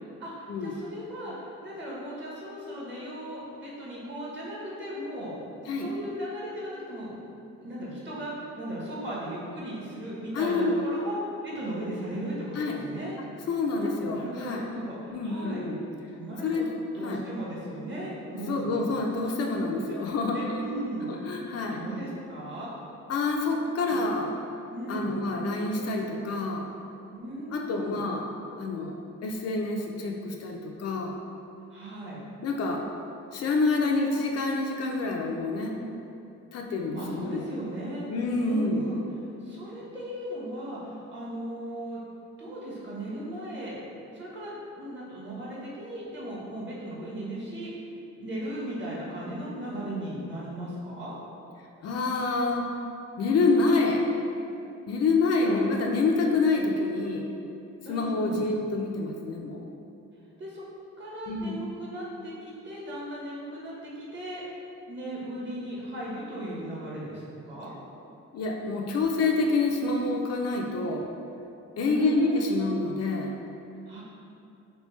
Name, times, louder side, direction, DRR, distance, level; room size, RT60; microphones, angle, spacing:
voice 1, 0.2-5.3 5.7-7.1 7.6-11.2 11.4-13.2 13.8-15.6 16.1-16.7 16.9-18.7 20.3-21.1 21.7-22.7 23.9-24.0 24.7-25.1 27.1-28.0 31.7-32.2 36.9-38.0 38.4-39.0 39.4-42.0 42.4-43.8 44.1-47.9 48.2-51.2 55.2-55.6 57.8-58.4 60.4-60.6 61.0-64.4 64.9-67.7 71.9-72.7 73.9-74.0, right 1 dB, 40° right, -6 dB, 1.1 m, -37 dB
voice 2, 10.3-10.8 12.6-12.8 13.5-14.7 15.1-15.8 16.4-16.7 17.0-17.2 18.3-20.6 21.1-21.8 23.1-24.4 24.9-26.7 27.5-28.3 28.6-31.1 32.4-32.9 33.3-35.8 36.5-37.5 38.1-38.9 51.8-52.7 53.2-54.0 54.9-57.3 57.9-59.6 61.3-61.6 68.3-71.1 71.8-73.4, left 3 dB, 55° left, 1 dB, 0.4 m, -27 dB
3.3 x 2.7 x 3.1 m, 2.7 s
cardioid pair, 90°, 30 cm